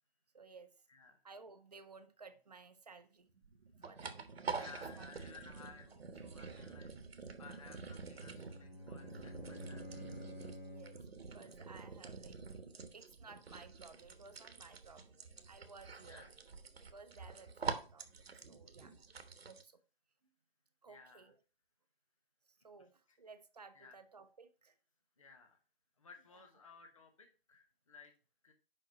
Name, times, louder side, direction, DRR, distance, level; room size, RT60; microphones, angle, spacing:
voice 1, 0.3-0.7 1.2-3.3 3.8-4.7 5.0-5.4 10.6-12.4 12.9-16.3 16.8-18.9 19.4-19.7 20.8-21.4 22.6-24.7 26.3-26.4, right 4 dB, 40° right, 0.7 m, -57 dB
voice 2, 0.9-1.2 4.5-6.9 7.4-10.0 16.0-16.3 20.9-21.3 23.1-23.2 23.7-24.0 25.2-25.6 26.0-28.1 28.4-28.5, left 4 dB, 35° left, 0.8 m, -57 dB
sound 1, 3.3-19.6, right 5 dB, 85° right, 1.2 m, -47 dB
Bowed string instrument, 7.9-11.1, equal, 50° left, 2.3 m, -50 dB
5.4 x 5.3 x 5.2 m
hypercardioid pair, 180°, 30 cm